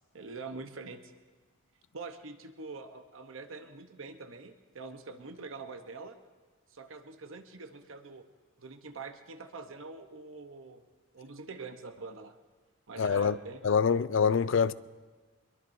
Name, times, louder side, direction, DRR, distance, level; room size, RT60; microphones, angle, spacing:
voice 1, 0.1-1.1 1.9-6.2 6.7-8.2 8.6-10.8 11.1-12.3 12.9-13.7, right 3 dB, 80° right, 0.9 m, -44 dB
voice 2, 13.0-13.3 13.6-14.7, left 6 dB, 70° left, 0.4 m, -25 dB
24.0 x 22.0 x 2.7 m
head